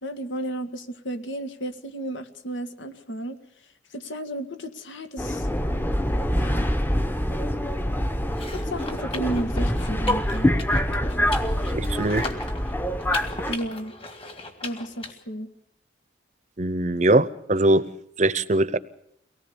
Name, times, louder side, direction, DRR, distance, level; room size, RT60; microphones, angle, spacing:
voice 1, 0.0-3.4 3.9-5.5 6.4-6.8 8.5-10.5 13.5-14.0 14.6-15.5, right 1 dB, 85° left, 9 dB, 1.7 m, -33 dB
Subway metro underground, 5.2-13.6, equal, 10° left, 0.9 m, -25 dB
sound 1, 8.3-15.1, left 3 dB, 30° left, 2.0 m, -38 dB
voice 2, 11.7-12.2 16.6-17.8 18.2-18.8, right 2 dB, 40° right, 16 dB, 0.8 m, -21 dB
23.5 x 18.5 x 7.1 m, 0.75 s
head